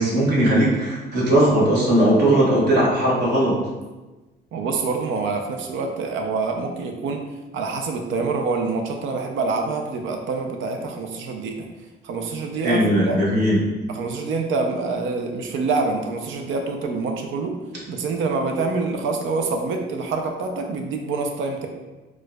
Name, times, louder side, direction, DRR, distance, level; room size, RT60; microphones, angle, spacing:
voice 1, 0.0-3.5 12.6-13.6, right 1 dB, 55° right, -6 dB, 1.1 m, -18 dB
voice 2, 4.5-7.2 7.5-11.7 12.0-13.3 13.9-17.6 17.9-21.7, right 4 dB, 80° right, 4 dB, 0.5 m, -26 dB
4.4 x 2.3 x 2.2 m, 1.2 s
cardioid pair, 90°, 20 cm